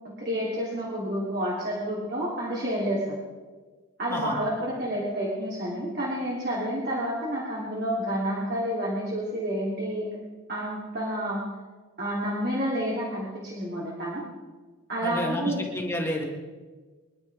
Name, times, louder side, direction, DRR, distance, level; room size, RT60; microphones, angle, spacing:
voice 1, 0.2-3.2 4.0-10.1 10.5-11.4 12.0-14.2 14.9-15.6, equal, 50° right, -6 dB, 3.1 m, -29 dB
voice 2, 15.0-16.2, left 1 dB, 10° left, -1 dB, 1.8 m, -30 dB
24.5 x 11.0 x 3.6 m, 1.3 s
head